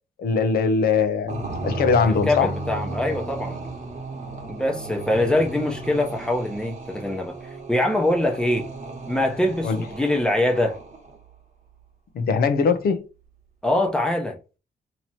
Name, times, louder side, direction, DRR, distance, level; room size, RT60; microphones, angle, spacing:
voice 1, 0.2-2.5 9.6-9.8 12.1-13.0, left 5 dB, 70° left, 0.7 m, -21 dB
sound 1, 1.3-11.2, right 2 dB, 45° right, 1.1 m, -34 dB
voice 2, 2.0-3.6 4.5-7.4 7.7-8.7 9.1-10.8 13.6-14.4, left 1 dB, 5° left, 0.8 m, -23 dB
2.9 x 2.9 x 4.2 m
cardioid pair, 145°, 16 cm